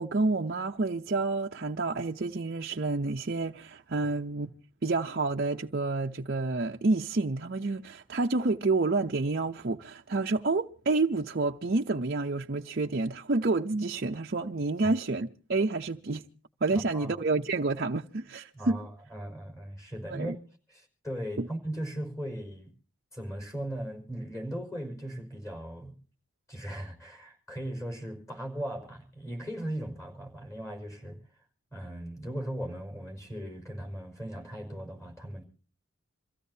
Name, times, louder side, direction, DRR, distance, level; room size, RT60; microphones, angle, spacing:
voice 1, 0.0-4.5 4.8-16.2 16.6-18.8 20.1-20.4 21.4-21.5, right 3 dB, 50° right, 0.6 m, -29 dB
voice 2, 16.7-17.2 18.5-20.3 20.7-22.7 23.1-26.0 26.5-31.2 31.7-35.4, right 1 dB, 15° left, 5.2 m, -38 dB
27.5 x 15.5 x 2.7 m
head